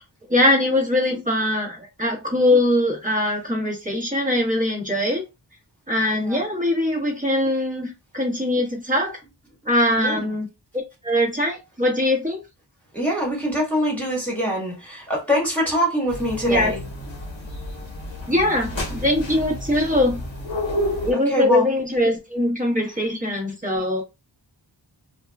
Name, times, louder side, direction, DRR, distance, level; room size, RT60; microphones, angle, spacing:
voice 1, 0.3-5.2 5.9-9.2 9.7-10.5 11.0-12.4 16.5-16.7 18.3-20.2 21.0-24.0, left 1 dB, 15° right, 1.2 m, -22 dB
voice 2, 6.1-6.4 9.9-10.3 12.9-16.8 21.1-21.6 23.1-23.2, equal, 5° left, 1.5 m, -24 dB
sound 1, 16.1-21.1, left 1 dB, 75° left, 1.0 m, -30 dB
2.9 x 2.3 x 2.2 m
wide cardioid pair, 40°, 46 cm